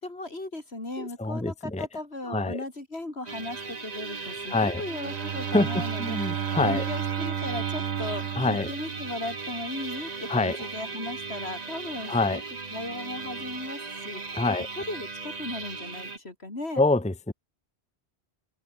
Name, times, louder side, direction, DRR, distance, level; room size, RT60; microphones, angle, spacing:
voice 1, 0.0-12.4 12.7-14.4 14.7-16.8, left 2 dB, 70° left, 4.9 m, -37 dB
voice 2, 1.0-1.9 2.3-2.6 4.5-4.8 5.5-5.7 6.0-6.8 8.4-8.7 10.3-10.6 12.1-12.4 14.3-14.7 16.8-17.3, left 2 dB, 5° left, 1.0 m, -25 dB
sound 1, 3.3-16.2, right 4 dB, 40° right, 1.4 m, -38 dB
Bowed string instrument, 4.7-9.6, right 9 dB, 80° right, 1.1 m, -32 dB
omnidirectional pair, 1.1 m